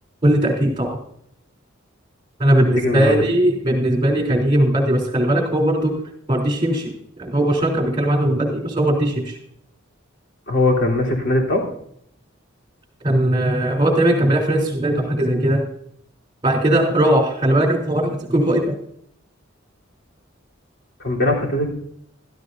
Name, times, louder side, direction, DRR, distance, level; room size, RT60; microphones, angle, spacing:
voice 1, 0.2-1.0 2.4-6.0 6.3-9.4 13.0-15.6 16.4-18.8, right 1 dB, 25° right, 0 dB, 3.5 m, -19 dB
voice 2, 2.8-3.1 10.5-11.6 21.0-21.7, left 2 dB, 60° left, -2 dB, 3.5 m, -20 dB
16.0 x 13.5 x 2.7 m, 0.67 s
head